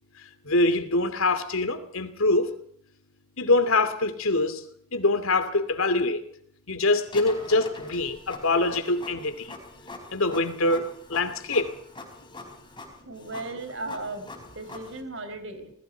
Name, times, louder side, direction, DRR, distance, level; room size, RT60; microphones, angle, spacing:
voice 1, 0.5-2.5 3.4-4.6 4.9-6.2 6.7-9.6 10.1-11.7, left 2 dB, 70° left, 2.5 m, -24 dB
Printer, 7.1-15.0, left 2 dB, 20° left, 4.7 m, -44 dB
voice 2, 13.1-14.3 14.5-15.7, right 2 dB, 60° right, 4.5 m, -36 dB
27.5 x 20.0 x 4.6 m
head